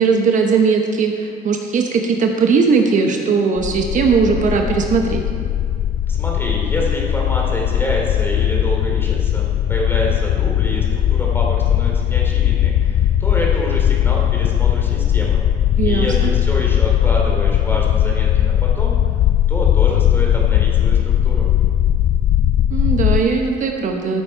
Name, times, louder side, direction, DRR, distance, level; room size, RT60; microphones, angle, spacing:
voice 1, 0.0-5.2 15.8-16.3 22.7-24.2, right 5 dB, 50° right, 3 dB, 1.0 m, -18 dB
sound 1, 3.6-23.2, left 11 dB, 55° left, 0.4 m, -18 dB
voice 2, 6.1-15.4 15.8-18.9 19.5-21.5, equal, 15° left, -2 dB, 2.8 m, -27 dB
14.0 x 7.4 x 4.6 m, 2.3 s
cardioid pair, 110°, 17 cm